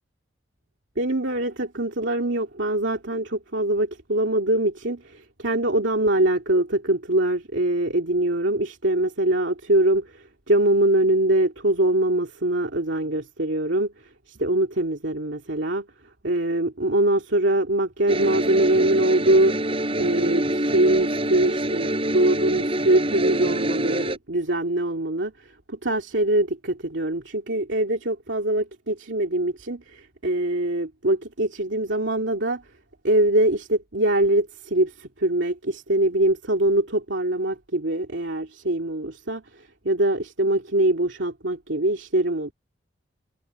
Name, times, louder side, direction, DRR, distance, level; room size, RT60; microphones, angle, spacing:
voice 1, 1.0-13.9 14.3-15.9 16.2-19.5 19.9-32.6 33.0-42.5, right 1 dB, 80° right, 2.6 m, -23 dB
sound 1, 18.1-24.2, right 1 dB, 30° right, 6.1 m, -26 dB
head